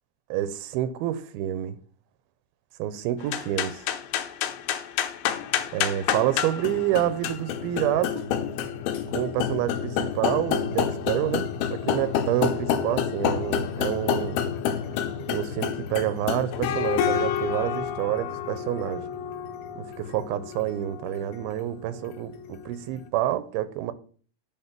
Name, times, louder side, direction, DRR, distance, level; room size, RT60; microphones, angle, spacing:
voice 1, 0.3-1.8 2.8-3.8 5.7-8.3 9.1-14.4 15.3-19.1 19.8-23.9, right 12 dB, 90° right, 2.6 m, -28 dB
sound 1, 3.2-22.7, left 8 dB, 85° left, 2.8 m, -29 dB
10.0 x 3.7 x 7.3 m
omnidirectional pair, 4.4 m